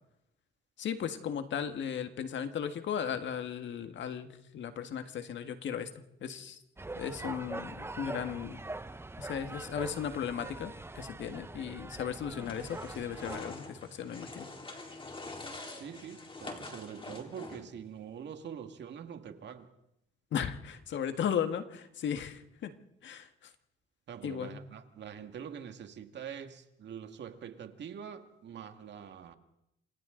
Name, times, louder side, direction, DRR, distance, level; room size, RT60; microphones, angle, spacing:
voice 1, 0.8-5.9 6.2-6.6 6.9-8.6 9.2-14.5 20.3-22.7 23.0-23.3 24.2-24.6, left 8 dB, 65° left, 8 dB, 1.7 m, -36 dB
sound 1, 6.8-13.4, right 2 dB, 10° right, 0.8 m, -43 dB
sound 2, 12.4-17.8, left 2 dB, 25° left, 4.0 m, -45 dB
voice 2, 15.8-19.7 24.1-29.4, right 8 dB, 65° right, 7 dB, 2.0 m, -44 dB
28.0 x 27.0 x 3.9 m, 0.83 s
cardioid pair, 90°, 20 cm